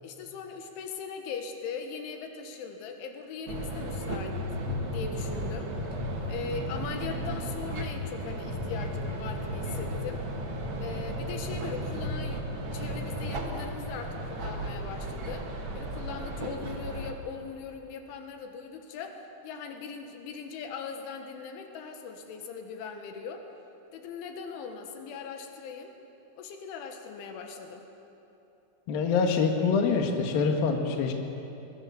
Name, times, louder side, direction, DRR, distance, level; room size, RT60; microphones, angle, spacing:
voice 1, 0.0-4.4 4.8-5.7 6.3-10.2 10.8-23.5 23.9-25.9 26.4-27.9, left 6 dB, 80° left, 4 dB, 3.9 m, -40 dB
sound 1, 3.5-17.1, equal, 55° right, 1.3 m, -34 dB
voice 2, 28.9-31.1, left 5 dB, 60° left, 3 dB, 3.1 m, -25 dB
25.0 x 21.5 x 7.0 m, 2.9 s
omnidirectional pair, 5.5 m